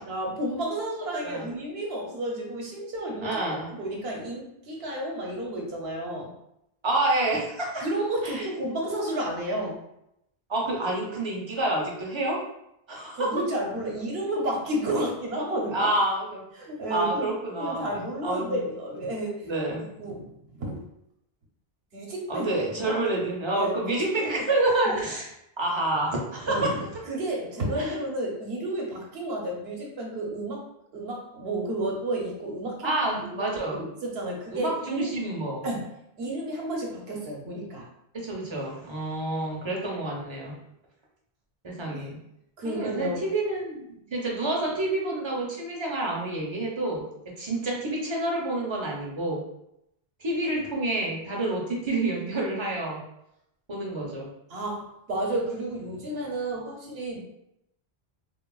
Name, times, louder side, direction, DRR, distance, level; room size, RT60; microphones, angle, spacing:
voice 1, 0.1-3.4 3.7-6.3 7.8-9.8 13.1-15.9 16.5-17.3 17.6-19.5 20.0-20.8 21.9-23.0 23.5-24.3 26.4-30.6 30.9-35.1 35.6-35.9 36.2-37.9 41.9-42.0 42.6-43.2 54.5-57.2, right 1 dB, 85° right, -1 dB, 0.9 m, -31 dB
voice 2, 3.2-3.7 6.8-7.8 8.2-8.5 10.5-12.4 12.9-13.3 15.7-16.4 16.9-18.6 19.4-19.9 22.3-25.3 25.6-26.7 27.7-28.0 32.8-33.8 34.5-35.7 38.1-40.5 41.6-42.2 42.6-49.4 50.2-53.0 53.7-54.3, right 2 dB, 35° right, -2 dB, 0.5 m, -28 dB
3.1 x 2.2 x 2.3 m, 0.81 s
omnidirectional pair, 1.0 m